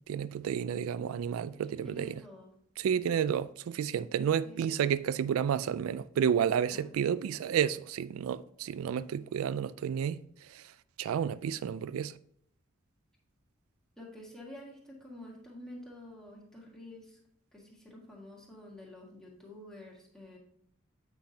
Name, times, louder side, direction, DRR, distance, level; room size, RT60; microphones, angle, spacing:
voice 1, 0.1-2.2 2.8-10.2 10.5-10.6 11.0-12.1, right 8 dB, 80° right, 0.3 m, -31 dB
voice 2, 1.7-2.5 4.4-4.8 6.6-6.9 14.0-17.2 17.5-20.4, left 1 dB, 5° left, 1.8 m, -49 dB
8.4 x 5.9 x 2.8 m
head